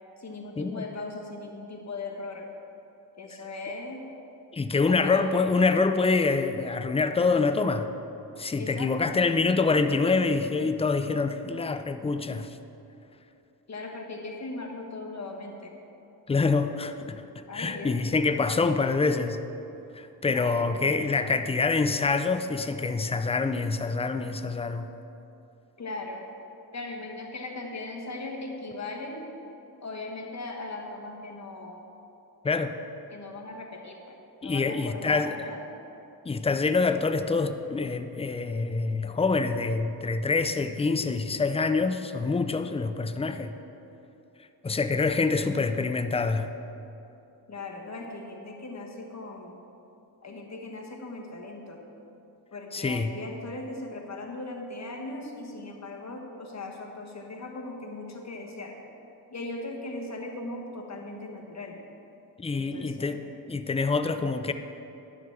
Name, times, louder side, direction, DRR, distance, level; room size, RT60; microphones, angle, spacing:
voice 1, 0.2-2.5 3.2-4.1 4.9-5.5 8.6-9.2 13.7-15.7 17.5-18.0 20.3-21.0 25.8-26.2 26.7-29.2 29.8-31.9 33.1-35.7 47.5-49.6 50.2-51.8 52.5-58.8 59.3-61.8 62.5-63.2, left 2 dB, 45° left, 1 dB, 1.3 m, -38 dB
voice 2, 4.5-7.9 8.4-12.6 16.3-17.2 17.5-19.4 19.9-24.9 32.4-32.8 34.4-35.4 36.3-43.5 44.6-46.5 52.7-53.1 62.4-63.2 63.5-64.5, left 4 dB, 15° left, 9 dB, 0.4 m, -26 dB
11.0 x 3.9 x 7.0 m, 2.9 s
cardioid pair, 70°, 39 cm